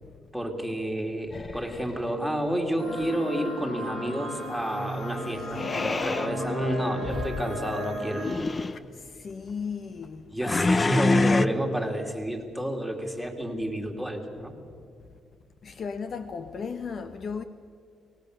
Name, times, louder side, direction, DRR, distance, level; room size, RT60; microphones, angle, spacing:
voice 1, 0.3-8.2 10.3-14.5, right 1 dB, ahead, 2.9 m, -30 dB
sound 1, 1.3-2.2 5.5-6.3 7.0-7.5 8.1-8.8 10.4-11.5, left 3 dB, 30° left, 0.6 m, -26 dB
sound 2, 2.8-8.3, left 1 dB, 80° left, 7.8 m, -35 dB
voice 2, 6.4-7.1 8.6-10.3 15.6-17.4, left 5 dB, 50° left, 0.9 m, -36 dB
24.0 x 18.5 x 6.7 m
cardioid pair, 90°, 0 cm